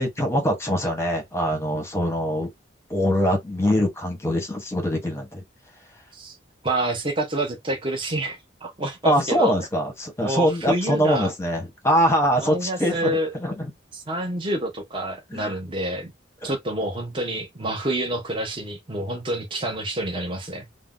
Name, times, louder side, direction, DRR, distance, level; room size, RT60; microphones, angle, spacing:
voice 1, 0.0-2.5 2.9-5.4 9.0-13.7 15.3-15.5, equal, 15° left, 0.8 m, -23 dB
voice 2, 6.6-9.5 10.2-11.3 12.4-13.3 13.9-16.1 16.4-20.7, right 1 dB, 25° right, 0.7 m, -28 dB
2.6 x 2.1 x 3.5 m
head